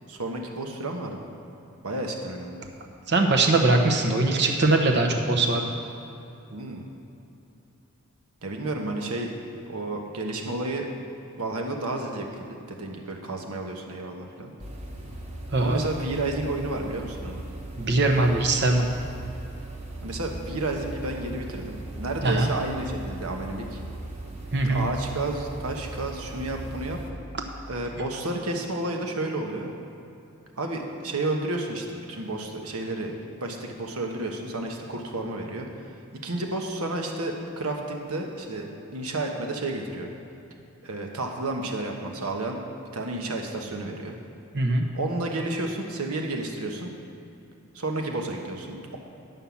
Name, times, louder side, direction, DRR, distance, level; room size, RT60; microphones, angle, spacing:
voice 1, 0.1-1.2 1.8-2.7 6.5-6.8 8.4-9.3 9.7-10.9 11.4-14.5 15.6-17.4 20.0-23.8 24.6-27.0 27.7-29.7 30.6-33.1 33.4-35.9 36.2-40.1 40.8-42.6 42.9-44.2 44.9-46.9 47.7-49.0, right 2 dB, 80° right, 2 dB, 1.3 m, -31 dB
voice 2, 3.1-5.7 15.5-15.8 17.8-18.9 22.2-22.5 24.5-24.9 44.5-44.8, right 2 dB, 50° right, 2 dB, 1.1 m, -21 dB
sound 1, 14.6-27.1, right 2 dB, 30° right, 1.0 m, -38 dB
11.0 x 5.7 x 7.2 m, 2.9 s
head